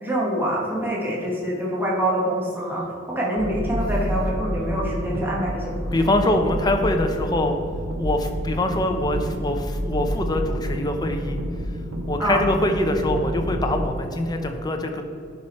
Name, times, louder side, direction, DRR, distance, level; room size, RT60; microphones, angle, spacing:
voice 1, 0.0-6.1 12.2-12.4, right 1 dB, 10° right, -4 dB, 1.2 m, -25 dB
sound 1, 3.4-13.9, equal, 75° right, 0.9 m, -29 dB
voice 2, 5.9-7.6 8.0-11.4 12.1-15.0, left 1 dB, 20° left, 4 dB, 0.6 m, -23 dB
10.5 x 4.8 x 4.3 m, 2.5 s
head